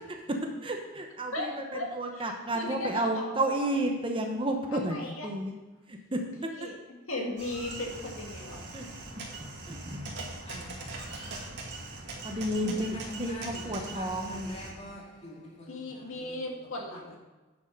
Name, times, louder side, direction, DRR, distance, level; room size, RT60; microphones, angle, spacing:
voice 1, 0.4-1.5 2.0-5.5 5.9-6.5 8.7-8.8 9.4-10.1 12.2-14.6, right 1 dB, 25° right, 0.9 m, -32 dB
voice 2, 1.3-3.8 4.7-5.3 6.4-8.6 10.5-10.6 15.7-17.2, left 2 dB, 75° left, 1.9 m, -38 dB
sound 1, 7.4-14.7, right 2 dB, 55° right, 2.2 m, -41 dB
voice 3, 10.5-10.9 12.7-15.7 16.2-16.4, left 1 dB, 30° left, 2.4 m, -44 dB
9.8 x 6.7 x 5.2 m
head